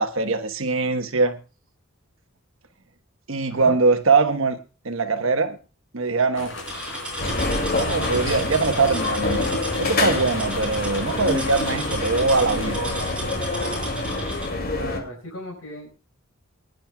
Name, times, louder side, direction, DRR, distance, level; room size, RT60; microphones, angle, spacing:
voice 1, 0.0-1.4 3.3-4.6 4.8-5.6 5.9-6.5 7.7-9.5 9.8-12.9, right 4 dB, 70° right, 1.2 m, -22 dB
sound 1, 6.3-12.7, left 2 dB, 65° left, 4.9 m, -37 dB
sound 2, 6.7-14.5, equal, 5° right, 4.9 m, -35 dB
sound 3, 7.2-15.0, left 2 dB, 45° left, 2.5 m, -26 dB
voice 2, 14.7-15.9, left 1 dB, 85° left, 5.0 m, -36 dB
24.0 x 10.5 x 2.3 m
head